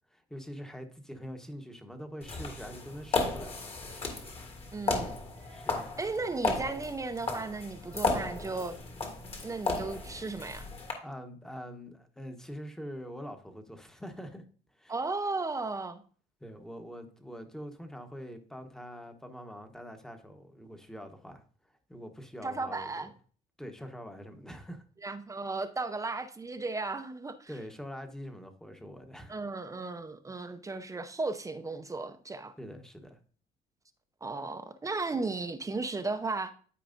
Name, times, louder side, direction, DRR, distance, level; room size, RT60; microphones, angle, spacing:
voice 1, 0.1-4.1 5.5-6.0 11.0-14.4 14.8-14.9 16.4-21.4 21.9-22.9 23.6-24.8 27.5-29.4 32.6-33.2, equal, 5° left, 1.0 m, -44 dB
sound 1, 2.2-10.9, left 3 dB, 35° left, 1.7 m, -34 dB
voice 2, 4.7-5.1 6.0-8.8 9.4-10.7 14.9-16.0 22.4-23.1 25.0-27.5 29.3-32.5 34.2-36.5, right 3 dB, 20° right, 0.6 m, -35 dB
12.5 x 4.7 x 2.6 m
cardioid pair, 110°, 17 cm